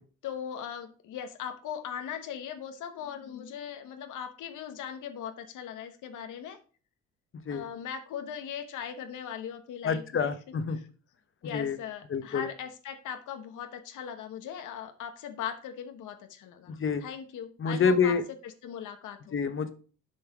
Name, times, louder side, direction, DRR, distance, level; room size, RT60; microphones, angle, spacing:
voice 1, 0.2-6.6 7.5-10.3 10.7-10.9 11.4-19.4, left 8 dB, 80° left, 8 dB, 1.1 m, -39 dB
voice 2, 9.8-10.8 11.5-11.8 12.1-12.5 16.7-17.0 17.6-18.2 19.3-19.7, left 5 dB, 45° left, 11 dB, 1.0 m, -27 dB
6.9 x 5.5 x 5.0 m, 0.39 s
cardioid pair, 90°, 30 cm